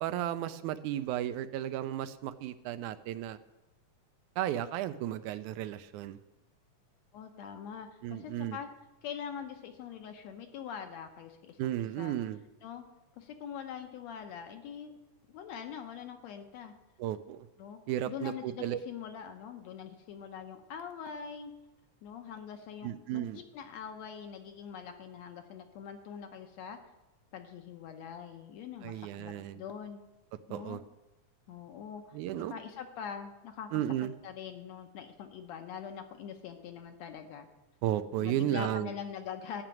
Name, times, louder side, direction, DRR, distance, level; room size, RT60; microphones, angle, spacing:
voice 1, 0.0-3.4 4.4-6.2 8.0-8.6 11.6-12.4 17.0-17.5 17.9-18.8 22.8-23.4 28.8-29.6 30.5-30.8 32.1-32.5 33.7-34.1 37.8-38.9, right 12 dB, 85° right, 12 dB, 2.1 m, -34 dB
voice 2, 7.1-8.7 9.0-11.6 12.0-12.2 12.6-12.9 13.2-14.9 15.3-16.7 17.6-21.5 22.0-26.8 27.3-30.0 30.5-30.8 31.5-33.7 34.2-37.5 38.2-39.6, left 7 dB, 70° left, 6 dB, 2.0 m, -43 dB
13.0 x 5.9 x 9.0 m, 1.0 s
omnidirectional pair, 3.5 m